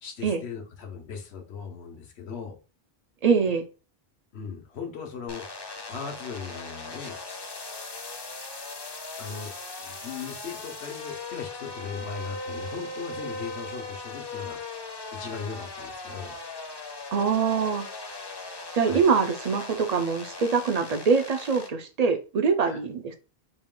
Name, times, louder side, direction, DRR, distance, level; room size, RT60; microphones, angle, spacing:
voice 1, 0.0-2.6 4.3-5.5 5.9-7.2 9.2-9.5 9.8-14.6 15.1-16.3 18.8-19.1 22.6-22.8, left 6 dB, 85° left, 1.1 m, -38 dB
voice 2, 3.2-3.6 17.1-17.8 18.7-23.1, right 5 dB, 55° right, 0.5 m, -24 dB
sound 1, 5.3-21.7, left 3 dB, 30° left, 0.5 m, -39 dB
4.1 x 2.2 x 3.7 m
omnidirectional pair, 1.1 m